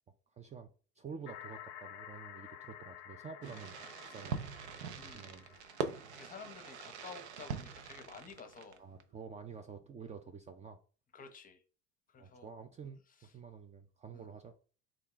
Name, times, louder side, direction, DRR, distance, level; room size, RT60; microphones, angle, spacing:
voice 1, 0.3-0.7 1.0-3.7 4.0-4.5 5.0-5.5 8.8-10.8 12.2-14.6, right 6 dB, 20° right, 0.4 m, -49 dB
sound 1, 1.3-7.0, left 11 dB, 85° left, 0.5 m, -52 dB
Fireworks, 3.4-9.0, right 6 dB, 80° right, 0.6 m, -43 dB
voice 2, 5.0-5.4 6.1-8.8 11.1-11.6 12.1-12.5 13.2-13.3 14.1-14.3, left 5 dB, 25° left, 0.7 m, -52 dB
3.6 x 2.2 x 3.8 m
hypercardioid pair, 80°, 33 cm